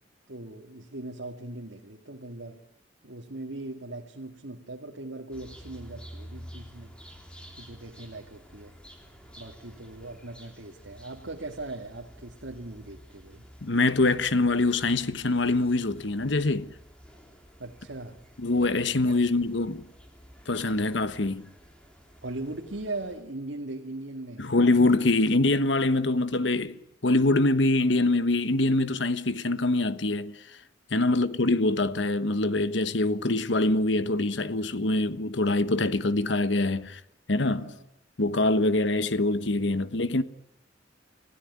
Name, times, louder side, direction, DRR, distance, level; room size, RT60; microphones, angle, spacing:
voice 1, 0.3-2.6 3.0-6.9 7.6-8.7 9.4-13.4 17.6-18.2 22.2-24.5 30.9-31.2 37.6-37.8, right 2 dB, 80° right, 2.0 m, -39 dB
sound 1, 5.3-23.3, equal, 5° left, 3.6 m, -50 dB
voice 2, 13.6-16.7 18.4-19.8 20.5-21.4 24.4-30.4 30.9-37.0 37.3-37.7 38.2-40.2, left 2 dB, 70° left, 1.2 m, -24 dB
29.5 x 16.5 x 9.5 m
head